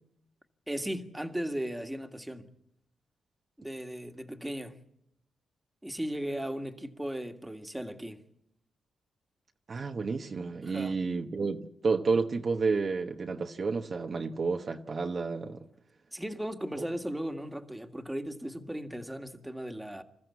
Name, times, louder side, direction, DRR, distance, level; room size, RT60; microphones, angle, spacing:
voice 1, 0.7-2.5 3.6-4.8 5.8-8.2 10.6-11.0 16.1-20.0, equal, 5° right, 1.8 m, -36 dB
voice 2, 9.7-15.6 16.8-16.9, right 4 dB, 45° right, 1.1 m, -30 dB
26.5 x 14.5 x 8.5 m
cardioid pair, 100°, 0 cm